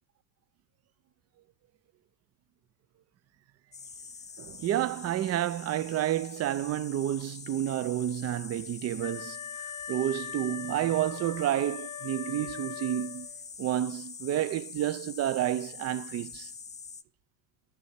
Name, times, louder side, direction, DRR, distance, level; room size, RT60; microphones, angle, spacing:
sound 1, 3.7-17.0, left 5 dB, 15° left, 0.8 m, -45 dB
voice 1, 4.4-9.4 9.9-13.3 13.6-16.5, right 12 dB, 30° right, 0.7 m, -30 dB
Wind instrument woodwind instrument, 9.0-13.4, left 9 dB, 40° left, 1.0 m, -41 dB
12.5 x 7.0 x 8.3 m
supercardioid pair, 110°, 48 cm